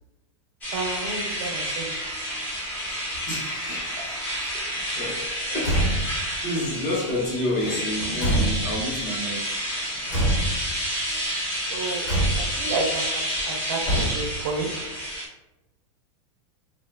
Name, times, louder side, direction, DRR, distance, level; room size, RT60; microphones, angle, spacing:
sound 1, 0.6-15.3, equal, 10° left, 0.5 m, -30 dB
voice 1, 0.7-2.0 11.5-12.1 12.4-14.8, right 3 dB, 45° right, 3 dB, 0.4 m, -31 dB
voice 2, 3.3-4.6 4.9-5.2 5.5-6.0 6.4-9.5 9.9-10.2, left 1 dB, 35° left, -4 dB, 0.8 m, -30 dB
Car / Truck / Slam, 5.6-6.3 7.6-9.0 10.1-10.9 12.1-12.7 13.8-14.5, right 1 dB, 75° left, 1.4 m, -26 dB
2.3 x 2.2 x 3.2 m, 1.0 s
supercardioid pair, 175°, 16 cm